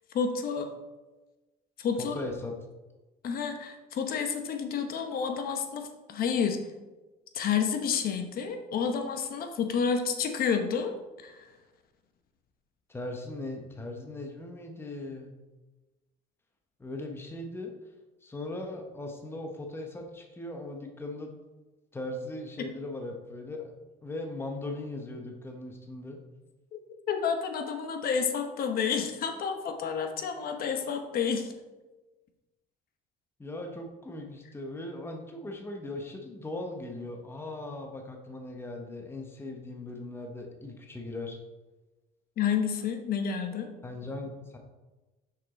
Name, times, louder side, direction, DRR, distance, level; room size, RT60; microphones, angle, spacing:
voice 1, 0.1-0.7 1.8-2.3 3.2-6.6 7.3-11.4 22.6-22.7 26.7-26.8 27.1-31.5 42.4-43.7, left 6 dB, 60° left, 6 dB, 1.0 m, -30 dB
voice 2, 2.0-2.5 12.9-15.3 16.8-17.7 18.2-21.3 21.9-23.7 24.0-26.2 33.4-41.4 43.8-44.6, left 2 dB, 15° left, 2 dB, 1.0 m, -39 dB
6.1 x 6.0 x 4.1 m, 1.1 s
cardioid pair, 110°, 17 cm